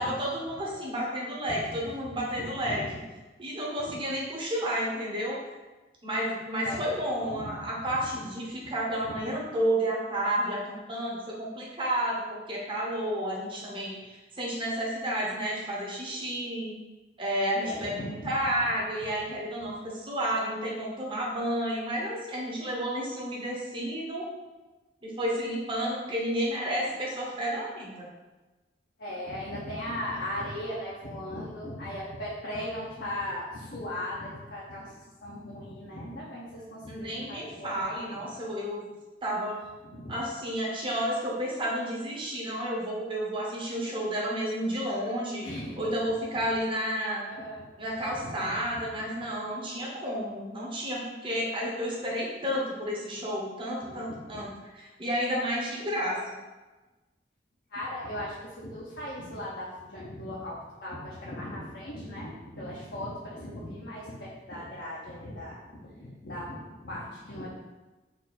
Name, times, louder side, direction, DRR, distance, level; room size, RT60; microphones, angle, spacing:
voice 1, 0.0-2.8 3.4-5.4 6.0-16.7 17.2-24.2 25.0-28.1 36.9-38.8 39.2-39.6 40.1-45.5 45.8-47.2 47.8-56.2, equal, 30° right, -4 dB, 1.0 m, -31 dB
voice 2, 2.1-2.9 3.9-4.0 6.6-6.8 7.2-7.5 9.0-9.2 17.6-18.3 29.0-34.9 35.2-37.8 39.8-40.2 45.4-45.9 47.4-47.6 48.2-48.3 53.8-54.1 54.3-54.4 57.7-67.5, left 1 dB, 60° left, -6 dB, 0.8 m, -38 dB
4.2 x 2.7 x 4.2 m, 1.2 s
head